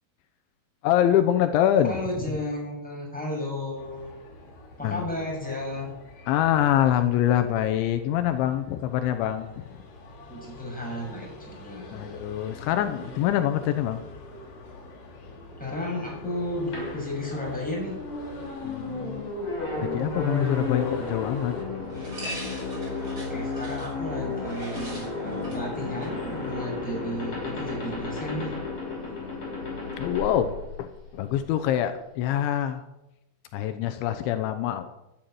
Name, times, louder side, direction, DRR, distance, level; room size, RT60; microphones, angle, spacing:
voice 1, 0.8-2.0 4.8-5.1 6.3-9.6 11.9-14.0 18.6-19.2 19.8-21.6 30.0-32.8 33.5-34.9, left 11 dB, 80° left, 8 dB, 3.2 m, -25 dB
voice 2, 1.9-4.1 4.8-5.9 10.3-12.2 15.6-18.0 23.0-28.5, left 1 dB, ahead, -3 dB, 6.6 m, -33 dB
sound 1, 3.8-21.7, left 2 dB, 55° left, 4.2 m, -44 dB
sound 2, 16.7-31.3, left 3 dB, 30° left, 7.4 m, -33 dB
sound 3, 20.0-28.0, right 1 dB, 20° right, 6.4 m, -43 dB
12.5 x 9.8 x 9.4 m, 0.93 s
omnidirectional pair, 5.4 m